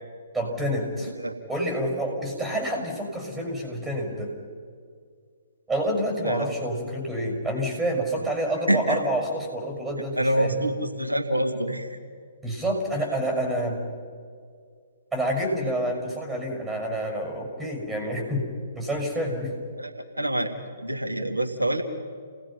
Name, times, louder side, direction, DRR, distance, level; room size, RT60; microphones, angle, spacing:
voice 1, 0.3-1.1 1.5-4.3 5.7-10.6 12.4-13.9 15.1-18.5 18.7-19.6, right 1 dB, 5° right, 1 dB, 6.0 m, -28 dB
voice 2, 8.7-9.0 10.2-12.0 19.8-19.9 20.2-20.5 20.8-21.8, right 1 dB, 90° right, 3 dB, 2.0 m, -25 dB
29.5 x 19.5 x 5.8 m, 2.1 s
figure-of-eight pair, 125°, 0 cm